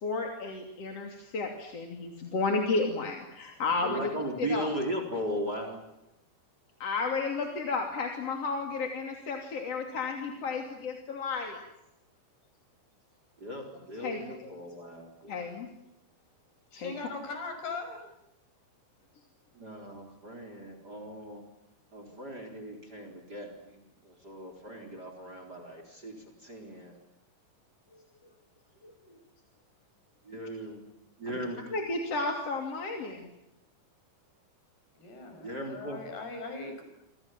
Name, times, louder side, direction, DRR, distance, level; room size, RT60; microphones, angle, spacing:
voice 1, 0.0-4.1 4.4-4.7 6.8-11.6 14.0-14.5 15.3-15.7 16.7-16.9 31.3-31.4 31.7-33.3, left 3 dB, 40° left, 2 dB, 3.3 m, -32 dB
voice 2, 3.8-5.8 13.4-15.3 19.5-21.4 21.9-23.8 24.0-26.2 26.4-26.9 30.3-30.9 31.2-31.6 35.4-36.0, equal, 20° right, 5 dB, 4.2 m, -37 dB
voice 3, 16.7-18.0 35.0-36.8, left 3 dB, 60° left, 6 dB, 8.0 m, -40 dB
28.0 x 26.5 x 7.5 m, 0.87 s
omnidirectional pair, 5.2 m